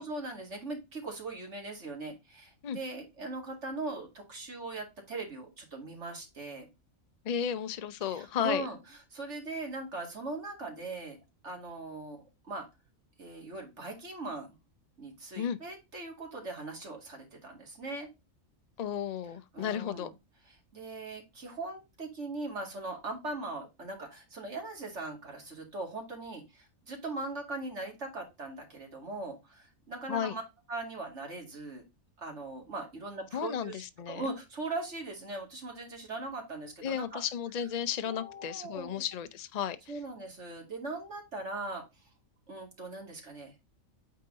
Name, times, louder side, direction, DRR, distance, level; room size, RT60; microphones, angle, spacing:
voice 1, 0.0-6.7 8.0-11.2 11.4-12.7 13.2-14.5 15.0-18.1 19.5-20.1 20.5-30.4 30.7-31.8 32.2-37.2 38.1-39.0 39.9-42.1 42.5-43.6, right 2 dB, 55° right, 2.5 m, -40 dB
voice 2, 7.2-8.6 15.4-15.6 18.8-20.1 30.1-30.3 33.3-34.3 36.8-39.8, left 9 dB, 70° left, 0.3 m, -33 dB
8.6 x 3.8 x 3.8 m
omnidirectional pair, 1.4 m